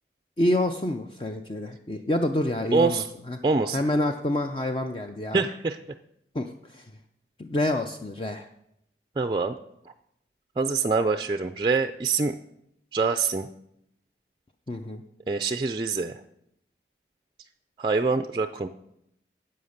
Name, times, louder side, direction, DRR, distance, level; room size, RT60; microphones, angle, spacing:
voice 1, 0.4-3.4 3.7-5.5 6.3-6.9 7.4-8.5 14.7-15.0, left 1 dB, 30° left, 5 dB, 0.5 m, -27 dB
voice 2, 2.7-3.1 3.4-3.8 5.3-5.8 9.2-9.5 10.6-12.3 12.9-13.5 15.3-16.2 17.8-18.7, right 4 dB, 25° right, 8 dB, 0.4 m, -25 dB
11.0 x 7.7 x 6.5 m, 0.79 s
head